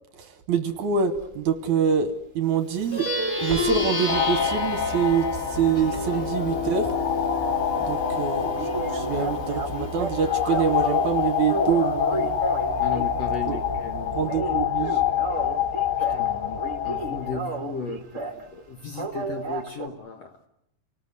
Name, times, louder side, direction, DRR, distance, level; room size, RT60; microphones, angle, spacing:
voice 1, 0.5-3.1 3.4-6.9 7.9-8.5 8.9-12.3 13.5-13.6 14.2-15.0, right 7 dB, 65° right, 9 dB, 2.2 m, -25 dB
sound 1, 1.1-1.3 3.4-3.9 4.3-6.5 6.7-6.9 7.3-7.4 7.7-7.8 8.0-8.1 8.6-11.1 11.5-13.2 13.6-13.9 14.2-16.3 16.6-18.4 18.9-19.9, right 4 dB, 40° right, 1.1 m, -33 dB
Plucked string instrument, 2.8-12.5, left 2 dB, 25° left, 2.4 m, -31 dB
sound 2, 4.1-17.4, left 8 dB, 90° left, 3.7 m, -27 dB
voice 2, 12.8-14.3 16.1-20.5, left 5 dB, 60° left, 6 dB, 1.8 m, -36 dB
28.5 x 19.0 x 8.1 m, 0.78 s
omnidirectional pair, 4.4 m